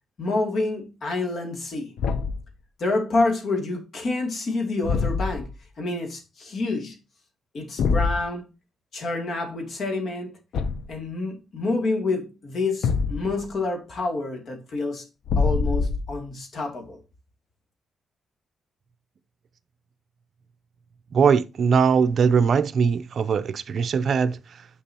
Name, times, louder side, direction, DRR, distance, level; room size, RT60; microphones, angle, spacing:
voice 1, 0.2-1.9 2.8-5.5 5.8-7.0 7.5-8.5 8.9-10.3 10.9-15.0 15.4-17.0, left 3 dB, 55° left, 2.7 m, -28 dB
Thump thud, 2.0-2.5 4.8-5.5 7.8-8.2 10.5-11.0 12.8-13.5 15.2-16.2, left 5 dB, 75° left, 0.7 m, -24 dB
voice 2, 21.1-24.7, right 6 dB, 55° right, 0.6 m, -21 dB
9.9 x 5.3 x 2.9 m
cardioid pair, 110°, 0 cm